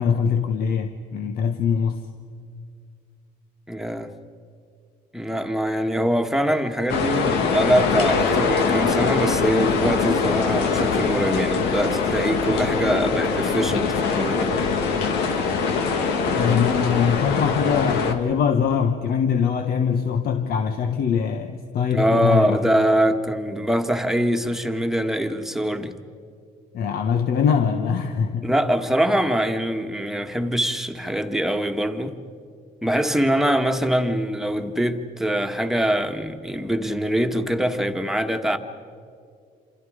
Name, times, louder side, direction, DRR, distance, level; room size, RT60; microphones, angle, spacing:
voice 1, 0.0-2.0 16.3-22.6 26.7-28.5, left 7 dB, 65° left, 1.3 m, -22 dB
voice 2, 3.7-4.1 5.1-14.8 21.9-25.9 28.4-32.1 32.8-38.6, equal, ahead, 1.6 m, -23 dB
sound 1, 6.9-18.1, left 5 dB, 90° left, 2.1 m, -23 dB
28.0 x 27.5 x 5.0 m
cardioid pair, 110°, 17 cm